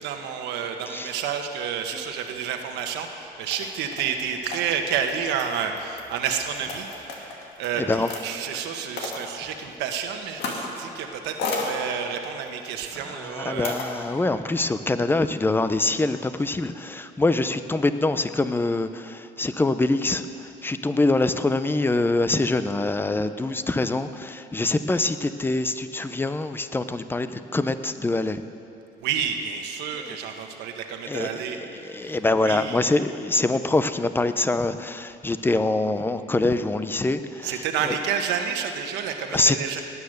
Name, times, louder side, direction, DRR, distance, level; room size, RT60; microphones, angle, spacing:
voice 1, 0.0-13.7 29.0-31.6 31.9-32.2 32.4-32.8 37.4-39.8, right 7 dB, 85° right, 5 dB, 1.3 m, -30 dB
sound 1, 2.5-2.9 3.5-8.4 9.0-9.3 10.3-10.8 11.1-11.7 12.4-12.7 13.6-13.9, left 4 dB, 85° left, 2.3 m, -34 dB
voice 2, 7.8-8.1 12.9-28.4 30.0-30.2 31.0-37.9 39.3-39.8, left 2 dB, 10° left, 11 dB, 0.6 m, -25 dB
18.5 x 9.5 x 6.6 m, 2.8 s
cardioid pair, 110°, 17 cm